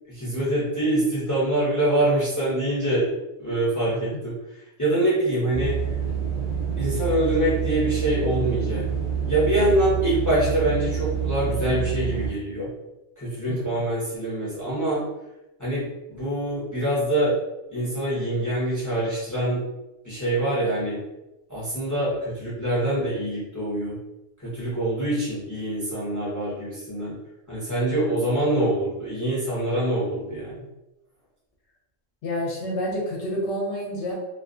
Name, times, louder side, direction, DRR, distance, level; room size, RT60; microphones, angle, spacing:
voice 1, 0.1-3.1 3.4-4.4 4.8-5.8 6.8-8.9 9.3-12.7 13.2-15.0 15.6-17.3 17.7-19.6 20.0-21.0 21.5-24.0 24.4-27.2 27.5-30.6, right 1 dB, 25° left, -8 dB, 0.4 m, -25 dB
sound 1, 5.5-12.3, right 7 dB, 40° right, 0.5 m, -27 dB
voice 2, 13.5-13.8 32.2-34.1, equal, 65° left, -3 dB, 0.8 m, -29 dB
2.4 x 2.1 x 2.4 m, 0.95 s
omnidirectional pair, 1.5 m